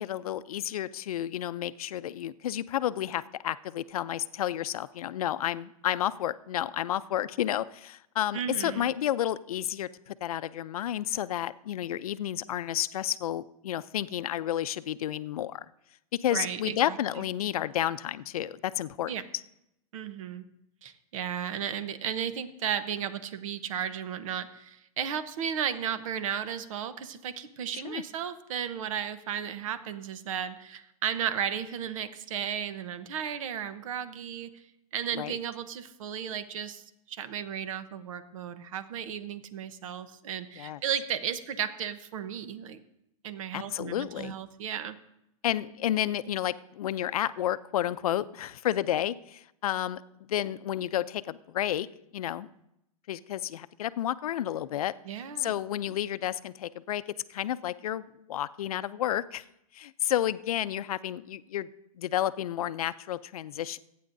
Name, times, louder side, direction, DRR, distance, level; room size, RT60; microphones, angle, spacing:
voice 1, 0.0-15.6 16.1-19.1 27.7-28.0 35.2-35.4 40.6-40.8 43.5-44.3 45.4-51.9 52.1-52.5 53.1-54.9 55.4-57.0 57.3-59.4 59.7-61.7 62.0-63.8, left 12 dB, 80° left, 15 dB, 0.6 m, -31 dB
voice 2, 8.3-8.9 16.3-17.2 19.1-19.2 19.9-20.4 20.8-34.6 34.9-42.8 43.2-45.0 55.0-55.5, right 8 dB, 65° right, 12 dB, 1.0 m, -34 dB
26.0 x 9.4 x 2.7 m, 0.83 s
hypercardioid pair, 145°, 18 cm